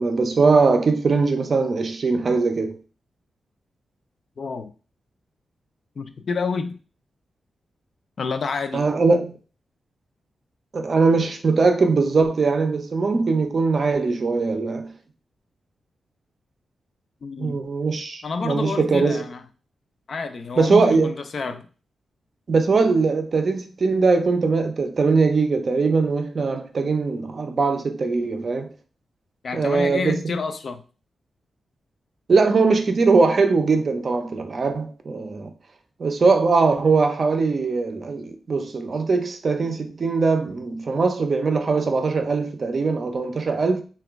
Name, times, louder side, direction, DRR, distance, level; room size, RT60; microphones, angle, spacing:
voice 1, 0.0-2.8 8.7-9.3 10.7-14.9 17.4-19.2 20.6-21.1 22.5-28.7 29.5-30.2 32.3-35.5 36.0-43.8, right 4 dB, 45° right, 0.4 m, -21 dB
voice 2, 4.4-4.7 6.0-6.8 8.2-8.9 17.2-17.6 18.2-19.4 20.1-21.7 29.4-30.8, left 4 dB, 55° left, 0.3 m, -28 dB
2.9 x 2.3 x 3.4 m
wide cardioid pair, 125°, 0 cm